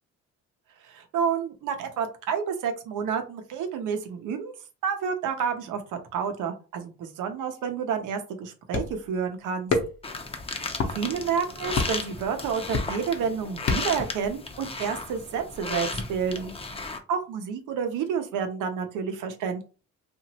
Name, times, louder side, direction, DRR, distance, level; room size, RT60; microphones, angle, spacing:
voice 1, 0.8-4.5 4.8-9.7 11.0-16.5 17.1-19.6, right 6 dB, 85° right, 6 dB, 0.8 m, -29 dB
sound 1, 8.7-9.1 9.7-10.1 10.7-11.0 11.8-12.1 12.7-13.1 13.7-14.1, left 4 dB, 50° left, 0.8 m, -26 dB
sound 2, 10.0-17.0, left 3 dB, 20° left, 0.6 m, -35 dB
2.9 x 2.5 x 2.8 m, 0.33 s
cardioid pair, 90°, 30 cm